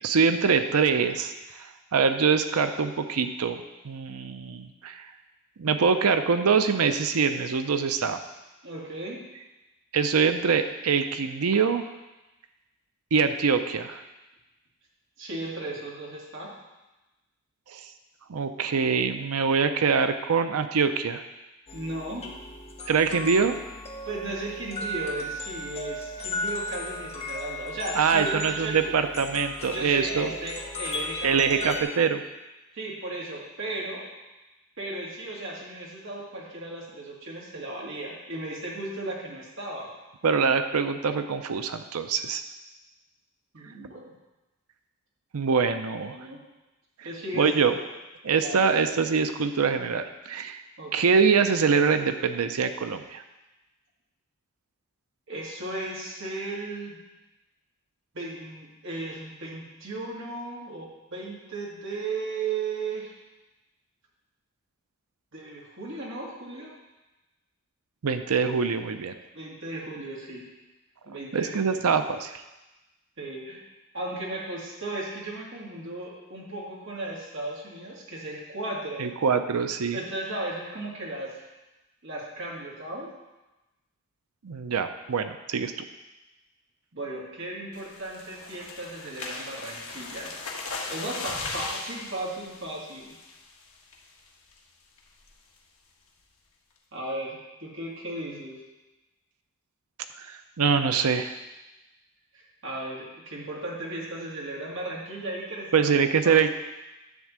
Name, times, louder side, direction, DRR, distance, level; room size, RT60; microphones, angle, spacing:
voice 1, 0.0-1.3 1.6-3.6 3.8-5.1 5.6-8.2 9.9-11.9 13.1-14.0 17.7-17.8 18.3-21.2 22.9-23.5 27.9-30.3 31.2-32.2 40.2-42.4 45.3-46.1 47.0-47.1 47.4-47.8 48.2-50.6 50.9-53.2 68.0-69.1 71.3-72.4 79.0-80.0 84.4-85.7 100.2-101.3 105.7-106.5, right 5 dB, 90° right, 9 dB, 0.6 m, -24 dB
voice 2, 8.6-9.2 15.2-16.5 21.7-22.3 24.0-28.9 29.7-31.8 32.7-34.0 34.8-39.9 43.5-44.1 45.5-45.6 46.1-46.4 47.0-47.9 48.4-48.8 50.8-51.1 55.3-57.0 58.1-63.1 65.3-66.7 69.3-70.5 71.0-71.8 73.2-73.6 73.9-79.1 79.9-81.5 82.0-83.1 86.9-90.3 90.9-93.1 96.9-98.6 102.3-106.0 106.2-106.4, right 2 dB, 55° right, -4 dB, 2.1 m, -36 dB
sound 1, 21.7-31.8, equal, 30° left, 0.9 m, -36 dB
sound 2, 87.7-93.5 93.9-94.2 94.5-94.6 95.0-95.3, left 3 dB, 75° left, 1.2 m, -38 dB
11.0 x 3.6 x 7.3 m, 1.0 s
head